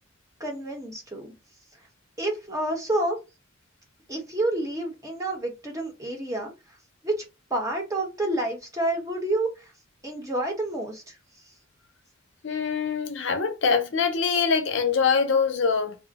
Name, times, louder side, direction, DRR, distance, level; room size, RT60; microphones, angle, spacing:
voice 1, 0.4-1.3 2.2-3.2 4.1-6.5 7.0-7.1 7.5-9.5 10.0-11.0, right 1 dB, 15° right, 0.9 m, -28 dB
voice 2, 12.4-16.0, left 5 dB, 65° left, 0.5 m, -24 dB
2.5 x 2.1 x 3.9 m
head